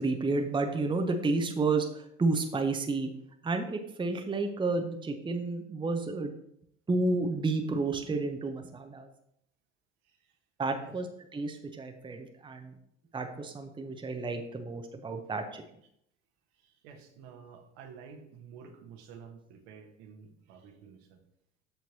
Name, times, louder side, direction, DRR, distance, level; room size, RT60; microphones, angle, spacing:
voice 1, 0.0-1.9 2.2-3.1 3.4-6.3 6.9-9.1 10.6-12.7 13.1-15.6, right 3 dB, 15° right, 5 dB, 0.9 m, -31 dB
voice 2, 16.6-21.2, right 6 dB, 60° right, 3 dB, 1.4 m, -50 dB
13.5 x 4.5 x 2.8 m, 0.73 s
figure-of-eight pair, 65°, 35 cm